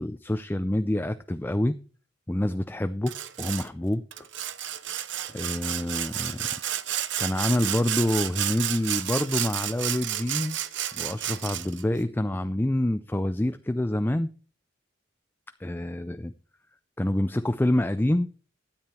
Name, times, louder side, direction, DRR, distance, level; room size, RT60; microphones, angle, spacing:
voice 1, 0.0-1.8 2.3-4.1 5.3-6.5 7.2-10.6 10.9-14.3 15.6-16.3 17.0-18.3, left 1 dB, 10° left, 0.4 m, -27 dB
Sawing, 3.1-3.7 4.1-11.8, right 11 dB, 70° right, 0.8 m, -31 dB
12.5 x 8.7 x 4.3 m
head